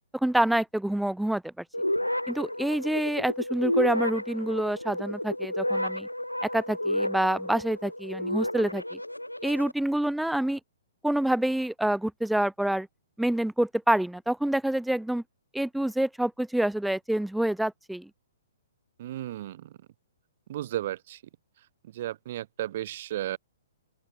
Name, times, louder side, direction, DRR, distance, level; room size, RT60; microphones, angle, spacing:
voice 1, 0.2-1.4 2.3-6.1 6.4-8.8 9.4-10.6 11.0-12.9 13.2-15.2 15.5-18.1, right 1 dB, ahead, 1.1 m, -27 dB
sound 1, 1.7-9.7, left 1 dB, 90° left, 1.2 m, -31 dB
voice 2, 19.0-19.8 20.5-21.2 21.8-23.4, right 13 dB, 45° right, 4.5 m, -34 dB
open air
figure-of-eight pair, 120°, 0 cm